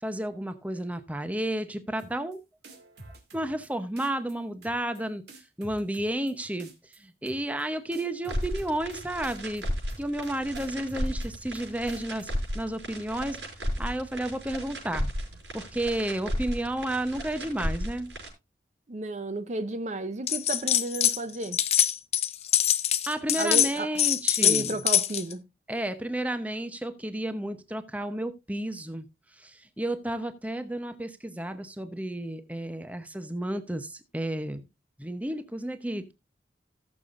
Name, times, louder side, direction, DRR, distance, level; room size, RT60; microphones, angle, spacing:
voice 1, 0.0-2.4 3.3-5.2 5.6-6.7 7.0-9.7 10.0-15.1 15.5-18.1 23.1-24.8 25.7-29.1 29.4-34.6 35.0-36.1, right 1 dB, 10° right, 0.8 m, -32 dB
sound 1, 2.0-2.4 2.6-3.7 4.0-4.3 4.6-5.0 5.3-6.3 6.6-7.0 7.3-7.6 7.9-9.0 9.2-9.6 9.9-10.3 10.6-11.6 11.9-12.3, right 2 dB, 65° right, 2.5 m, -48 dB
sound 2, 8.3-18.3, equal, 85° right, 5.8 m, -34 dB
voice 2, 18.9-21.6 23.4-23.9 24.4-25.4, right 2 dB, 40° right, 0.6 m, -32 dB
sound 3, 20.3-21.2 21.4-25.3, left 11 dB, 35° left, 0.6 m, -24 dB
18.0 x 6.9 x 2.5 m
head